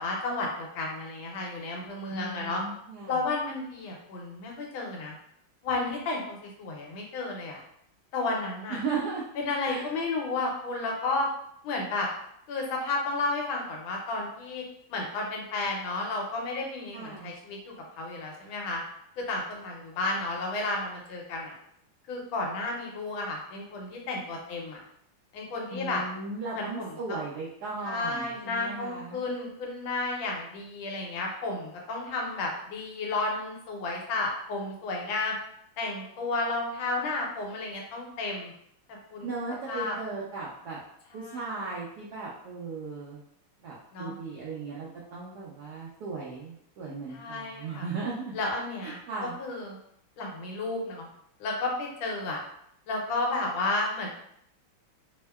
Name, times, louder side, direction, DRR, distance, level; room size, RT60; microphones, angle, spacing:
voice 1, 0.0-2.6 3.1-5.2 5.6-7.6 8.1-8.8 9.4-11.3 11.6-12.1 12.5-14.6 14.9-18.8 19.2-21.5 22.1-24.8 25.3-26.0 26.5-27.2 27.8-35.3 35.8-38.5 39.1-39.3 39.7-39.9 41.1-41.6 43.9-44.2 47.1-47.8 48.3-49.0 49.4-49.8 50.2-51.1 51.4-52.4 52.9-54.1, left 2 dB, 85° left, 0 dB, 1.5 m, -32 dB
voice 2, 2.1-3.2 8.7-9.2 9.7-9.8 16.9-17.3 25.7-29.2 39.2-40.8 41.1-43.2 43.6-48.3 48.8-49.3, right 4 dB, 75° right, -5 dB, 0.9 m, -36 dB
3.4 x 2.1 x 2.2 m, 0.71 s
omnidirectional pair, 2.2 m